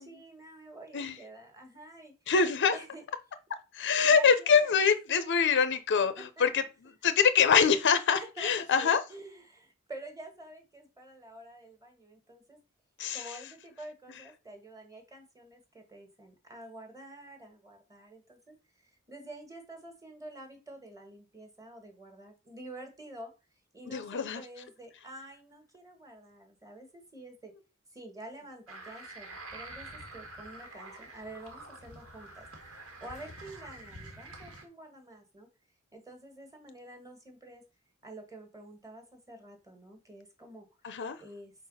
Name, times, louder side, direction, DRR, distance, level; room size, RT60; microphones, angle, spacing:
voice 1, 0.0-2.1 2.7-3.0 4.0-4.8 6.4-6.7 8.1-12.6 13.1-18.6 18.8-23.3 23.7-27.5 27.9-35.5 35.9-37.6 38.0-40.7 41.2-41.5, right 1 dB, 15° right, 1.5 m, -48 dB
voice 2, 2.3-2.8 3.7-6.6 7.0-9.0 13.0-13.3 23.9-24.4 40.8-41.2, left 6 dB, 55° left, 0.6 m, -24 dB
sound 1, 28.7-34.6, right 2 dB, 75° right, 1.8 m, -47 dB
4.6 x 4.0 x 5.4 m
head